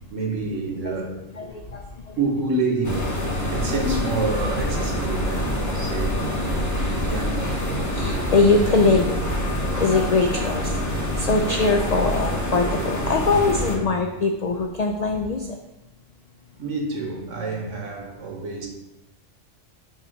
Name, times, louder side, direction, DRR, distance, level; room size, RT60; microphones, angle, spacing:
voice 1, 0.1-1.5 2.2-3.1 3.4-6.6 7.0-7.5 16.6-18.7, right 3 dB, 80° right, 1 dB, 1.4 m, -28 dB
voice 2, 1.4-2.2 7.9-9.2 9.5-15.6, left 3 dB, 80° left, 3 dB, 0.3 m, -22 dB
sound 1, 2.8-13.8, equal, 15° left, 0.9 m, -26 dB
6.0 x 3.0 x 5.3 m, 0.93 s
omnidirectional pair, 1.3 m